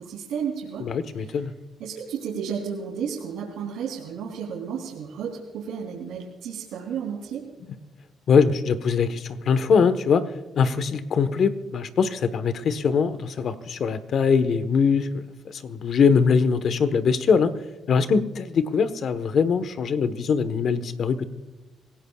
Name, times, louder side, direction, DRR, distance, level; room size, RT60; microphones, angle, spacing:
voice 1, 0.0-0.9 1.2-1.4 1.8-7.4, right 7 dB, 90° right, -4 dB, 3.1 m, -32 dB
voice 2, 0.8-1.5 8.3-10.2 10.6-15.1 15.4-17.5 17.9-21.3, left 6 dB, 60° left, 12 dB, 1.2 m, -22 dB
26.5 x 17.0 x 2.4 m, 1.2 s
cardioid pair, 90°, 0 cm